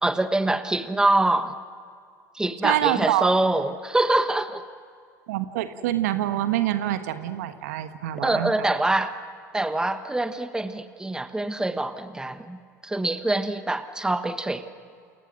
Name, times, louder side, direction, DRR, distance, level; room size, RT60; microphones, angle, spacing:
voice 1, 0.0-1.5 2.3-4.6 8.2-9.1 9.5-14.7, right 2 dB, 5° right, 11 dB, 1.4 m, -25 dB
voice 2, 2.6-3.3 5.3-8.7, right 13 dB, 65° right, 10 dB, 1.5 m, -26 dB
29.5 x 29.5 x 6.3 m, 2.2 s
figure-of-eight pair, 75°, 9 cm